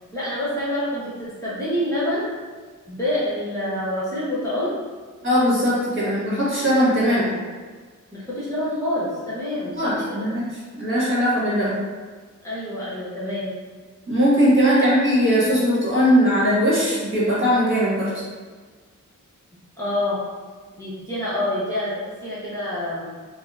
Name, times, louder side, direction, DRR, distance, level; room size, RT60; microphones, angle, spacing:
voice 1, 0.1-2.3 2.9-4.7 6.0-6.1 8.1-10.3 12.4-13.5 19.8-20.3 20.8-21.9 22.2-23.0, left 1 dB, 10° left, -10 dB, 1.1 m, -27 dB
voice 2, 5.2-7.3 9.8-10.5 10.7-11.7 14.1-18.1, equal, 35° right, -10 dB, 1.4 m, -19 dB
2.7 x 2.2 x 3.6 m, 1.5 s
wide cardioid pair, 45°, 33 cm